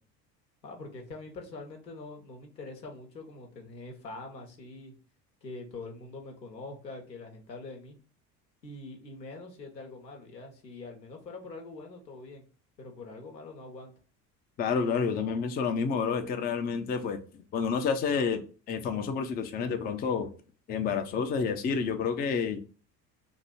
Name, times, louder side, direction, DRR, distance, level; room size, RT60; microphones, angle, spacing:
voice 1, 0.6-4.9 5.4-8.0 8.6-12.4 12.8-13.9, left 3 dB, 85° left, 0.9 m, -44 dB
voice 2, 14.6-17.2 17.5-20.3 20.7-22.6, left 6 dB, 20° left, 0.4 m, -29 dB
2.9 x 2.6 x 4.2 m
figure-of-eight pair, 60°, 49 cm